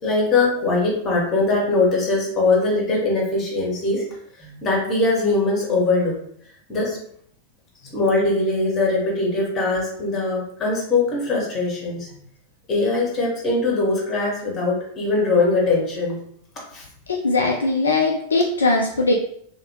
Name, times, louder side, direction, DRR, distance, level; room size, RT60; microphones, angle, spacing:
voice 1, 0.0-4.0 4.4-6.1 6.7-7.0 7.9-12.1 12.7-16.2 16.7-16.8, left 3 dB, 25° left, -3 dB, 1.3 m, -21 dB
voice 2, 17.1-19.1, left 3 dB, 70° left, 0 dB, 0.4 m, -20 dB
2.8 x 2.8 x 2.9 m, 0.66 s
figure-of-eight pair, 90°, 0 cm